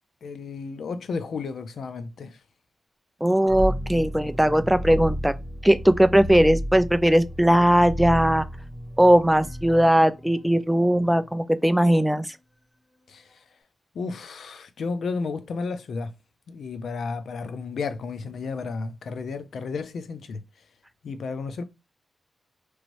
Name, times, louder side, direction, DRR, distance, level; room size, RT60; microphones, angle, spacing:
voice 1, 0.2-2.4 13.1-13.4 13.9-16.1 16.5-20.4 21.0-21.6, left 4 dB, 85° left, 0.4 m, -32 dB
voice 2, 3.2-5.3 5.6-8.4 9.0-12.4, right 1 dB, 5° right, 0.3 m, -19 dB
sound 1, 3.5-11.1, equal, 15° left, 1.1 m, -33 dB
3.0 x 2.6 x 2.9 m
wide cardioid pair, 110°, 0 cm